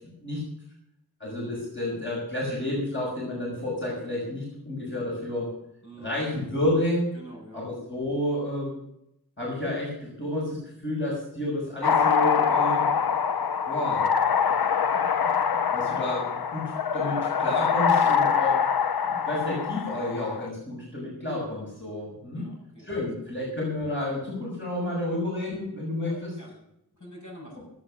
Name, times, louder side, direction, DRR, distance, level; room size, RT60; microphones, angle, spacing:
voice 1, 1.2-5.5 6.0-7.1 7.5-8.7 9.4-12.9 13.7-14.1 15.7-18.6 19.0-22.5 22.8-26.4, left 1 dB, 30° left, -4 dB, 6.0 m, -30 dB
voice 2, 5.8-6.2 7.1-7.6 12.8-13.1 22.3-22.9 26.0-26.6 27.0-27.6, right 1 dB, 50° left, -2 dB, 7.5 m, -46 dB
sound 1, 11.8-20.5, left 6 dB, 75° left, 0.6 m, -24 dB
17.0 x 9.0 x 6.3 m, 0.80 s
wide cardioid pair, 55°, 38 cm